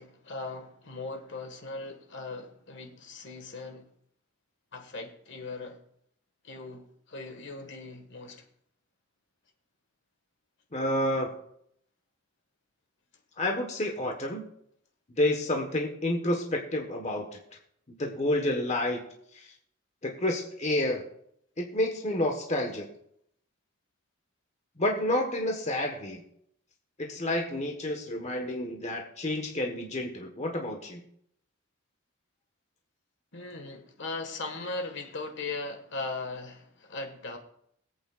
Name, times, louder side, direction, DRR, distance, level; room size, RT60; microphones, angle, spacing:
voice 1, 0.0-3.9 4.7-5.8 6.4-8.4 33.3-37.4, left 3 dB, 60° left, 5 dB, 1.6 m, -39 dB
voice 2, 10.7-11.3 13.4-14.5 15.2-17.4 18.0-19.0 19.3-19.5 20.0-21.0 21.6-22.9 24.8-26.2 27.0-31.0, left 1 dB, 35° left, 2 dB, 1.3 m, -29 dB
22.5 x 8.5 x 2.4 m, 0.70 s
head